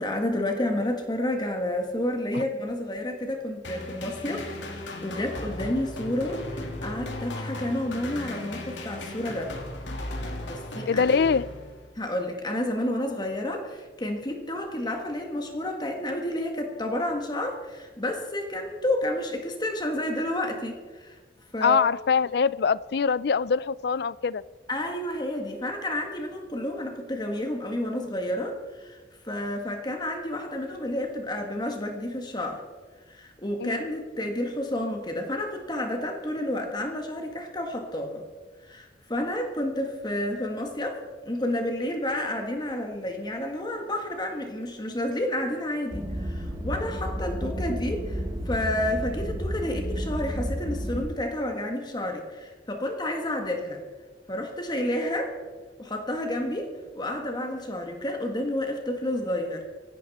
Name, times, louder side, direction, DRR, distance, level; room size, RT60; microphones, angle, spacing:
voice 1, 0.0-9.5 10.4-11.0 11.9-21.2 21.5-21.8 24.7-32.6 33.1-38.2 38.7-41.0 41.2-53.8 54.3-55.4 55.8-59.6, left 1 dB, 25° left, 3 dB, 1.7 m, -30 dB
sound 1, 3.6-12.0, left 1 dB, 90° left, 2.5 m, -36 dB
voice 2, 10.9-11.5 21.6-24.4 33.6-33.8, left 5 dB, 60° left, 19 dB, 0.4 m, -23 dB
sound 2, 45.9-51.1, equal, 25° right, 1.5 m, -31 dB
25.0 x 11.0 x 4.2 m, 1.4 s
head